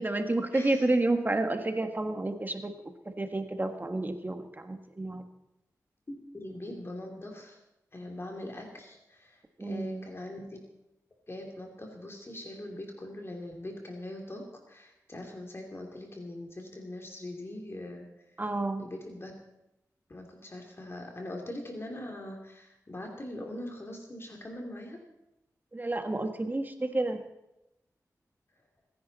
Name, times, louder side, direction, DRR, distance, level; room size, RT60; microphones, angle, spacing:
voice 1, 0.0-5.2 9.6-10.1 18.4-18.8 25.7-27.2, right 2 dB, 30° right, 6 dB, 1.5 m, -30 dB
voice 2, 0.5-0.9 6.1-7.6 7.9-10.6 11.3-18.1 18.8-19.3 20.1-25.0, left 1 dB, 40° left, 1 dB, 2.9 m, -42 dB
25.5 x 10.5 x 4.1 m, 0.88 s
cardioid pair, 65°, 7 cm